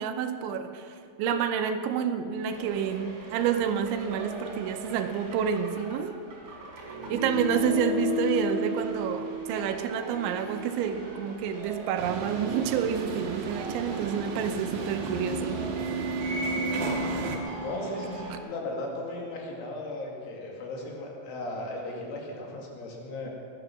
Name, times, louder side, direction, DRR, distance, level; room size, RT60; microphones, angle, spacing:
voice 1, 0.0-6.2 7.1-15.6, right 8 dB, 80° right, 7 dB, 3.0 m, -29 dB
sound 1, 2.5-18.4, equal, 30° right, 4.4 m, -35 dB
sound 2, 12.0-17.4, right 4 dB, 60° right, 2.8 m, -34 dB
voice 2, 17.6-23.3, left 2 dB, 75° left, -1 dB, 4.9 m, -36 dB
19.5 x 12.0 x 6.0 m, 2.4 s
omnidirectional pair, 5.6 m